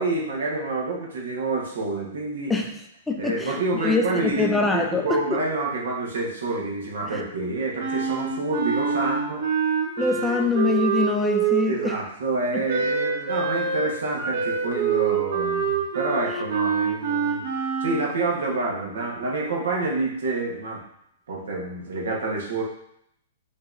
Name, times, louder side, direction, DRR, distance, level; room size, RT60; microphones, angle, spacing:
voice 1, 0.0-2.5 3.2-9.7 10.3-10.4 11.6-17.4 17.8-20.8 21.3-22.6, right 2 dB, 90° right, -2 dB, 1.2 m, -28 dB
voice 2, 3.1-5.4 7.1-7.2 10.0-12.0, left 4 dB, 5° left, 3 dB, 0.3 m, -24 dB
Wind instrument woodwind instrument, 7.8-11.9 12.7-18.1, right 6 dB, 60° right, 0.8 m, -25 dB
5.3 x 2.9 x 2.6 m, 0.75 s
hypercardioid pair, 160°, 0 cm